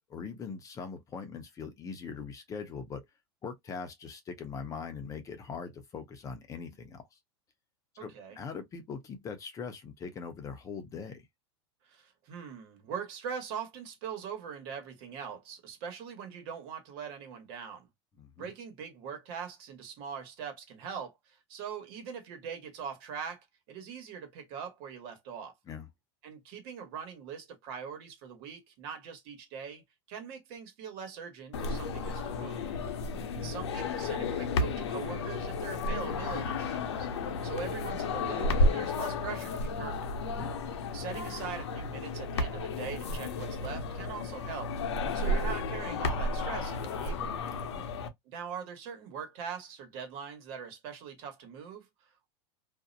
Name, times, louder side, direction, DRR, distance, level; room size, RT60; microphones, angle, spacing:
voice 1, 0.0-3.0 3.4-7.2 8.0-11.2 18.2-18.5 25.7-25.9 32.8-33.3 37.3-37.5 40.4-40.5 47.7-47.8, left 5 dB, 25° left, 0.5 m, -41 dB
voice 2, 8.0-8.4 11.8-17.9 18.4-25.5 26.2-29.8 30.1-32.6 33.3-37.1 37.4-40.1 40.9-44.7 45.1-47.4 48.2-52.3, right 7 dB, 55° right, 1.2 m, -42 dB
sound 1, 31.5-48.1, left 2 dB, 80° left, 0.6 m, -32 dB
2.5 x 2.1 x 2.6 m
supercardioid pair, 130°, 14 cm